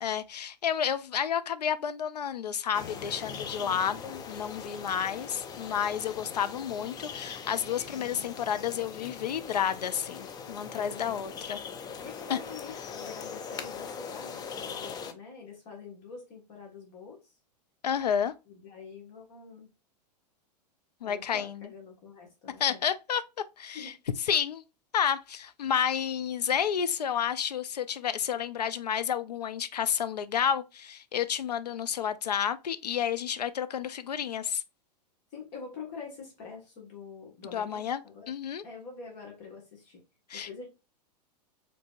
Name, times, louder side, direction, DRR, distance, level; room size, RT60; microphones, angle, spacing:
voice 1, 0.0-11.6 12.3-12.4 17.8-18.3 21.0-21.7 22.6-23.2 23.6-23.9 24.3-24.6 24.9-34.6 37.5-38.0 38.3-38.6 40.3-40.5, left 8 dB, 70° left, 0.5 m, -30 dB
sound 1, 2.7-15.1, left 6 dB, 20° left, 0.5 m, -41 dB
voice 2, 3.6-3.9 7.9-8.3 10.7-11.2 12.0-17.3 18.5-19.7 21.0-22.8 23.7-24.0 35.3-38.3 38.6-40.0 40.3-40.7, left 5 dB, 45° left, 1.7 m, -46 dB
5.0 x 3.4 x 2.4 m
figure-of-eight pair, 100°, 21 cm